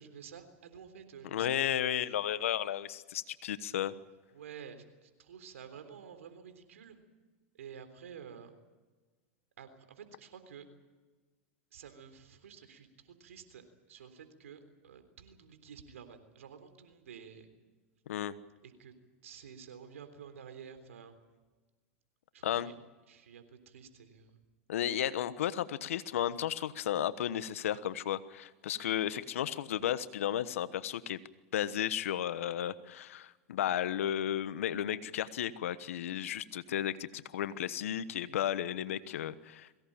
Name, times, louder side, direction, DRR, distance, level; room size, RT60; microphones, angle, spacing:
voice 1, 0.0-1.6 4.3-7.0 7.5-8.5 9.6-10.6 11.7-17.5 18.6-18.9 19.2-21.1 22.3-22.7 23.1-24.4 39.1-39.2, right 7 dB, 85° right, 9 dB, 3.6 m, -51 dB
voice 2, 1.3-3.9 18.1-18.3 22.4-22.7 24.7-31.2 31.5-39.8, left 11 dB, 80° left, 15 dB, 1.2 m, -34 dB
23.0 x 17.5 x 8.9 m, 1.3 s
hypercardioid pair, 105°, 7 cm